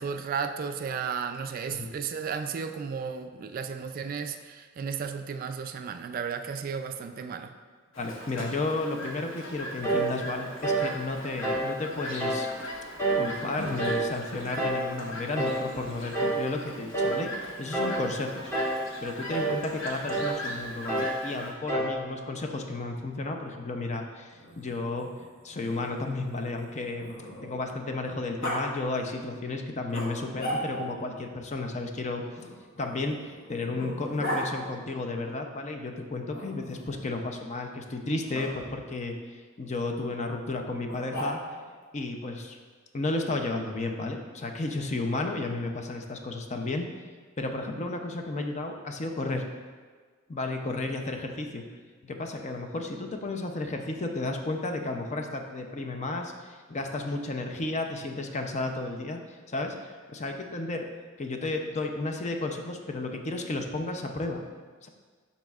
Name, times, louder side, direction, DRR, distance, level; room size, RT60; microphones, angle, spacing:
voice 1, 0.0-7.5, right 6 dB, 45° right, 8 dB, 0.3 m, -34 dB
Chirp tweet, 7.9-21.5, equal, 75° left, 1.0 m, -40 dB
voice 2, 8.0-12.5 13.2-18.5 19.0-25.1 25.4-27.1 27.4-32.2 32.8-41.4 41.9-42.6 42.9-46.8 47.4-49.4 50.3-51.6 52.0-59.2 59.5-60.8 61.2-64.4 64.8-64.9, left 2 dB, 35° left, 4 dB, 0.5 m, -33 dB
sound 1, 9.8-10.1 10.6-10.9 11.4-11.7 12.2-12.5 13.0-13.3 13.8-14.1 14.6-14.9 15.4-15.6 16.1-16.5 16.9-17.2 17.7-18.0 18.5-18.9 19.3-19.6 20.1-20.4 20.9-21.2 21.7-22.0, right 2 dB, 15° left, 1.1 m, -27 dB
Growling, 24.3-27.7 28.4-28.6 29.9-31.0 32.3-34.5 36.3-37.0 38.3-38.5 40.8-41.7, equal, 50° left, 1.3 m, -37 dB
11.5 x 4.1 x 2.4 m, 1.5 s
head